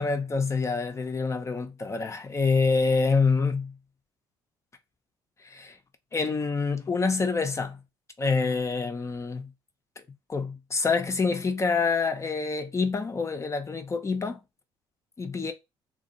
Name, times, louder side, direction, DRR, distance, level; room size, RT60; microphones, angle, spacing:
voice 1, 0.0-3.7 5.4-5.8 6.1-7.8 8.2-9.5 10.0-10.1 10.3-14.4 15.2-15.5, left 4 dB, 25° left, 0.5 m, -26 dB
2.4 x 2.2 x 2.6 m
supercardioid pair, 80°, 11 cm